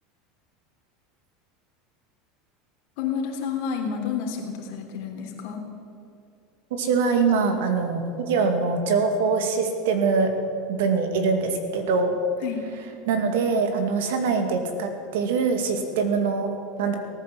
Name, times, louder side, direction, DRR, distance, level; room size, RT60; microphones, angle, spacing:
voice 1, 3.0-5.6 12.4-12.6, left 7 dB, 65° left, 1 dB, 3.3 m, -30 dB
voice 2, 6.7-10.3 10.7-12.1 13.1-17.0, right 4 dB, 85° right, 6 dB, 2.2 m, -23 dB
18.0 x 10.0 x 7.7 m, 2.5 s
supercardioid pair, 130°, 0 cm